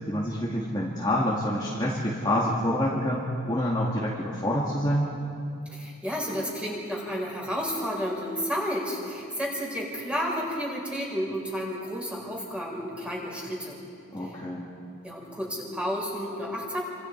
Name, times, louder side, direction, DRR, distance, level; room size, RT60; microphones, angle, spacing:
voice 1, 0.1-5.1 14.1-14.7, left 1 dB, 20° left, -5 dB, 2.2 m, -27 dB
voice 2, 5.7-13.8 15.0-16.8, equal, 5° right, -3 dB, 4.9 m, -31 dB
29.5 x 26.5 x 4.8 m, 2.5 s
head